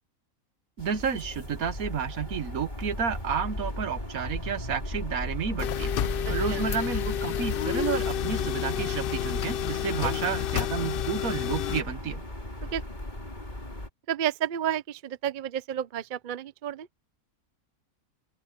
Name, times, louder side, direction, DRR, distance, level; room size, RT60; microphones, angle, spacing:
sound 1, 0.8-13.9, left 1 dB, 30° left, 4.0 m, -36 dB
voice 1, 0.8-12.2, right 7 dB, 75° right, 1.6 m, -31 dB
sound 2, 5.6-11.8, left 11 dB, 70° left, 0.5 m, -30 dB
voice 2, 6.2-6.6 10.0-10.1 12.7-12.8 14.1-16.9, right 10 dB, 50° right, 0.6 m, -31 dB
open air
omnidirectional pair, 1.5 m